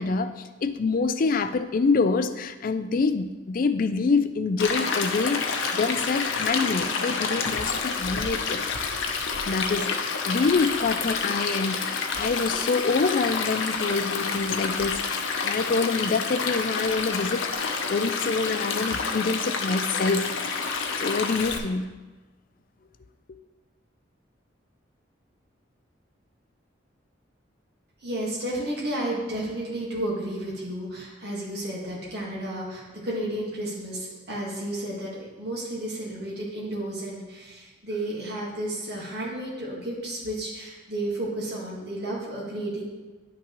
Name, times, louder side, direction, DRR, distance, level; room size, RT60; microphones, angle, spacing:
voice 1, 0.0-8.6 9.5-17.5 17.9-20.3 21.0-22.0, left 4 dB, 45° left, 0.4 m, -26 dB
Stream, 4.6-21.6, left 5 dB, 80° left, 0.7 m, -29 dB
voice 2, 28.0-42.9, right 1 dB, 55° right, 1.7 m, -32 dB
10.5 x 5.9 x 3.1 m
head